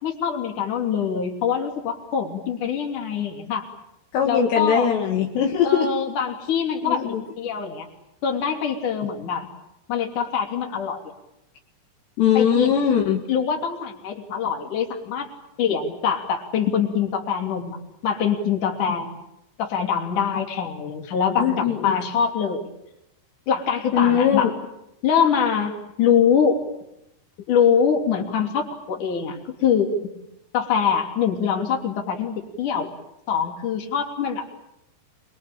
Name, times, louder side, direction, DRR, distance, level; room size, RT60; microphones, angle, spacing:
voice 1, 0.0-3.7 4.2-4.9 5.6-7.0 7.4-7.9 8.2-9.5 9.9-11.0 12.3-12.7 13.3-15.3 15.6-17.8 18.0-19.1 19.6-22.6 23.5-24.5 25.0-26.6 27.5-29.9 30.5-32.9 33.3-34.7, left 7 dB, 45° left, 3 dB, 4.1 m, -24 dB
voice 2, 4.1-5.9 6.8-7.2 12.2-13.2 21.4-21.9 23.9-24.5, left 8 dB, 70° left, 1 dB, 3.7 m, -20 dB
27.0 x 22.0 x 8.8 m, 0.85 s
omnidirectional pair, 5.6 m